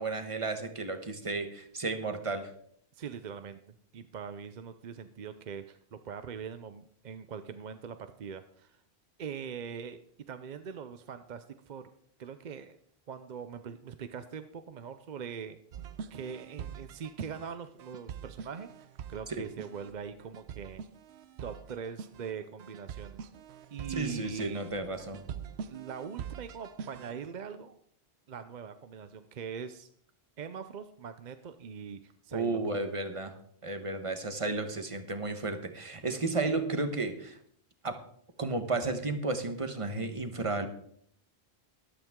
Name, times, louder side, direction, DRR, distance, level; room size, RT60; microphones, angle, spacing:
voice 1, 0.0-2.5 19.3-19.5 23.9-25.2 32.3-33.3 33.6-37.4 37.8-38.0 38.4-40.7, right 3 dB, 30° right, 7 dB, 1.2 m, -33 dB
voice 2, 2.9-3.6 3.9-8.8 9.2-10.0 10.3-11.9 12.2-12.8 13.1-15.6 16.1-20.8 21.4-23.2 23.7-24.6 25.7-27.8 28.3-29.9 30.4-32.6, right 7 dB, 50° right, 10 dB, 0.7 m, -42 dB
sound 1, 15.7-27.2, right 7 dB, 80° right, 0.9 m, -44 dB
13.0 x 12.0 x 3.7 m, 0.65 s
omnidirectional pair, 1.1 m